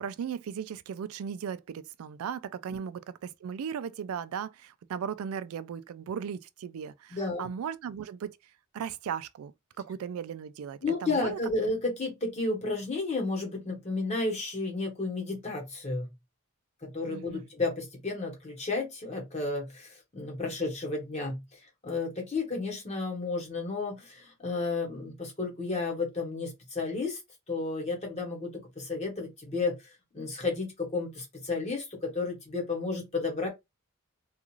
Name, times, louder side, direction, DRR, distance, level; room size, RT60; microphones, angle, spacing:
voice 1, 0.0-8.4 8.7-9.5 9.8-11.4 17.1-17.5, right 7 dB, 85° right, 0.3 m, -37 dB
voice 2, 7.1-7.5 10.8-16.1 16.8-21.4 21.8-27.2 27.5-29.7 30.1-33.5, left 3 dB, 30° left, 1.1 m, -32 dB
2.4 x 2.4 x 3.0 m
head